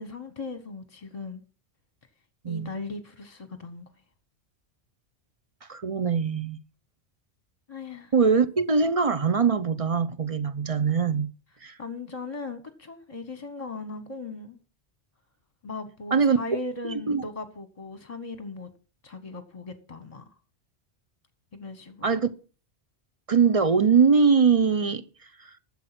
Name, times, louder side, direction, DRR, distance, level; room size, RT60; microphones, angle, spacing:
voice 1, 0.0-1.4 2.5-3.9 7.7-8.1 11.8-14.6 15.6-18.7 19.0-20.3 21.5-22.1, left 3 dB, 35° left, 1.2 m, -38 dB
voice 2, 5.7-6.6 8.1-11.3 11.6-11.8 16.1-16.4 16.8-17.2 22.0-22.3 23.3-25.0 25.4-25.5, right 5 dB, 40° right, 0.6 m, -22 dB
12.0 x 7.3 x 5.9 m
omnidirectional pair, 1.1 m